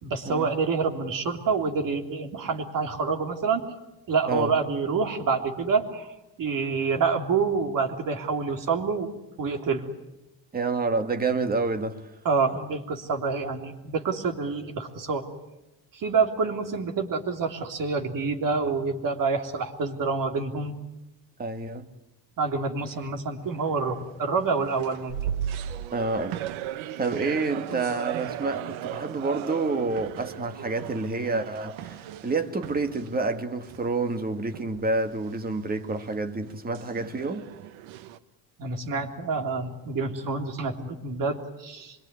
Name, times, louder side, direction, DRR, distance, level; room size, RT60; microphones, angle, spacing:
voice 1, 0.0-3.6 4.1-9.1 9.4-9.8 12.2-15.2 15.9-20.7 22.4-25.1 38.6-42.0, right 4 dB, 45° right, 3.4 m, -27 dB
voice 2, 4.3-4.6 10.5-12.0 21.4-21.9 25.9-26.4 27.0-37.5, right 3 dB, 20° right, 1.9 m, -28 dB
sound 1, 23.4-24.2 24.6-33.4 33.6-33.9 34.5-35.3 35.8-38.2, right 11 dB, 85° right, 1.3 m, -37 dB
25.5 x 23.0 x 9.6 m
cardioid pair, 145°, 46 cm